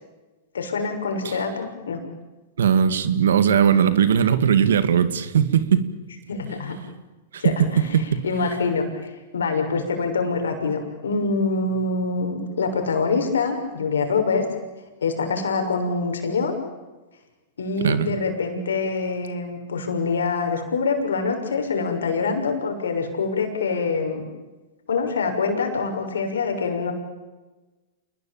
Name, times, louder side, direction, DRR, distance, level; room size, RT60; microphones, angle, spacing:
voice 1, 0.5-2.0 6.3-6.8 7.4-7.8 8.2-14.4 15.0-16.5 17.6-24.2 24.9-26.9, left 4 dB, 85° left, 5 dB, 6.5 m, -25 dB
voice 2, 2.6-5.8 6.8-6.9 7.3-7.4 7.9-8.2 17.8-18.2, right 8 dB, 80° right, 12 dB, 2.3 m, -19 dB
28.5 x 20.5 x 8.9 m, 1.2 s
hypercardioid pair, 120°, 0 cm